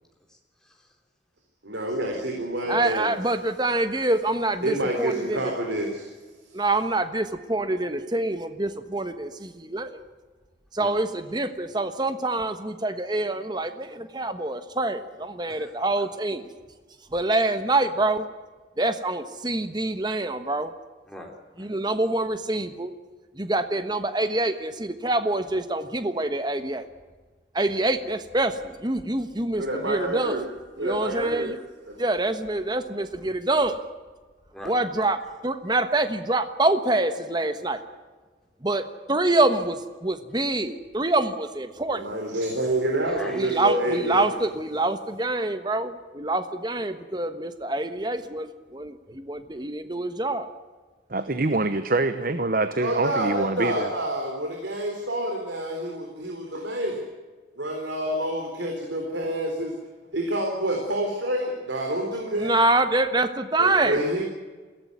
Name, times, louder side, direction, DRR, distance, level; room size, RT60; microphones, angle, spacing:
voice 1, 0.3-0.9 2.6-2.8 10.8-11.0 15.5-16.1 21.1-21.7 34.5-34.7 43.1-43.7, left 1 dB, 5° left, 0 dB, 3.8 m, -43 dB
voice 2, 1.6-3.1 4.6-6.1 6.5-6.6 29.6-30.5 30.8-31.5 31.9-32.0 42.0-44.2 52.8-57.0 57.6-59.7 60.1-62.5 63.6-64.2, right 1 dB, 75° right, 2 dB, 3.9 m, -28 dB
voice 3, 2.7-5.5 6.5-10.0 10.7-16.5 17.1-18.3 18.8-20.7 21.6-22.9 23.4-26.9 27.5-30.4 30.8-31.6 32.0-33.8 34.6-35.2 35.4-37.8 38.6-42.1 43.3-50.5 62.4-64.0, right 2 dB, 25° right, 9 dB, 1.2 m, -26 dB
voice 4, 51.1-53.9, right 2 dB, 45° right, 11 dB, 0.9 m, -25 dB
22.0 x 17.0 x 9.6 m, 1.4 s
head